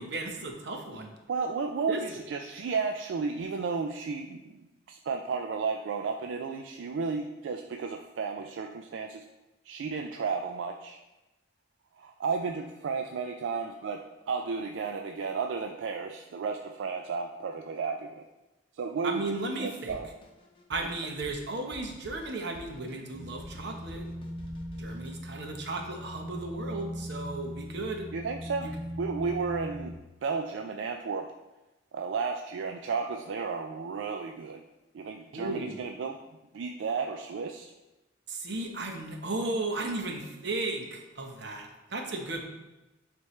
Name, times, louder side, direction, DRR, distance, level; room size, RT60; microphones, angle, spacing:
voice 1, 0.0-1.1 1.9-2.2 19.0-20.0 20.7-24.1 24.8-28.1 28.6-28.7 35.3-35.8 38.3-42.4, right 2 dB, 65° right, 3 dB, 0.9 m, -35 dB
voice 2, 1.3-4.6 4.9-9.3 9.6-11.0 12.0-18.3 18.7-19.2 19.6-20.1 20.8-20.9 28.1-28.7 29.0-31.3 31.9-34.6 34.9-36.2 36.5-37.7, right 5 dB, 85° right, 4 dB, 0.4 m, -33 dB
Drum kit, 19.9-25.2, left 1 dB, 30° left, 0.8 m, -50 dB
sound 1, 23.1-30.0, equal, 20° right, 0.6 m, -39 dB
9.4 x 3.4 x 3.2 m, 1.0 s
head